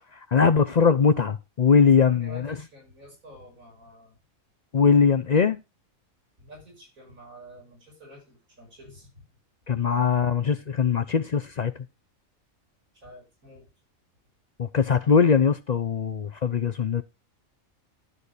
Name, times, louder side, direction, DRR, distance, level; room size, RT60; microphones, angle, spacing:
voice 1, 0.1-2.5 4.7-5.6 9.7-11.7 14.6-17.0, left 6 dB, 55° left, 0.4 m, -21 dB
voice 2, 2.0-4.2 6.4-9.2 12.9-13.7, left 1 dB, 80° right, 6.1 m, -48 dB
12.5 x 4.2 x 6.5 m
omnidirectional pair, 1.4 m